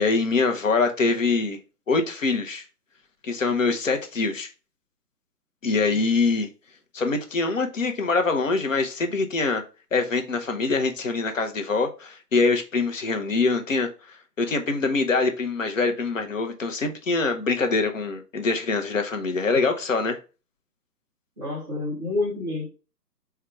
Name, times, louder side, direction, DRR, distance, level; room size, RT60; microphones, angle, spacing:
voice 1, 0.0-1.6 1.9-2.6 3.2-4.5 5.6-6.5 6.9-9.6 9.9-20.2, left 4 dB, 50° left, 0.8 m, -24 dB
voice 2, 21.4-22.7, left 2 dB, ahead, 0.6 m, -28 dB
4.6 x 2.3 x 4.6 m
figure-of-eight pair, 135°, 50 cm